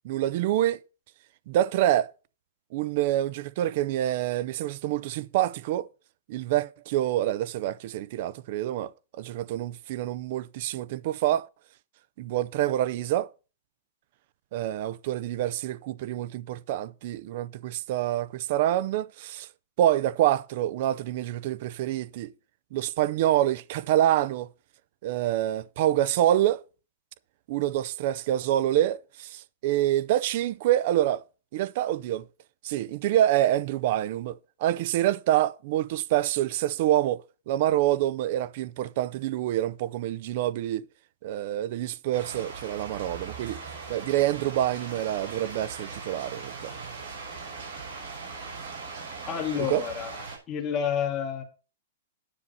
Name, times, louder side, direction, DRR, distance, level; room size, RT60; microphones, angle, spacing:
voice 1, 0.0-0.8 1.5-2.1 2.7-5.9 6.3-11.5 12.2-13.3 14.5-19.5 19.8-22.3 22.7-24.5 25.0-26.6 27.5-31.2 31.5-32.3 32.6-40.8 41.2-43.6 43.9-46.7 49.6-49.8, right 13 dB, 35° right, 0.4 m, -26 dB
sound 1, 42.1-50.4, right 4 dB, 55° right, 6.3 m, -40 dB
voice 2, 49.3-50.2 50.5-51.4, left 8 dB, 15° left, 2.0 m, -29 dB
9.8 x 6.5 x 5.3 m
supercardioid pair, 180°, 0 cm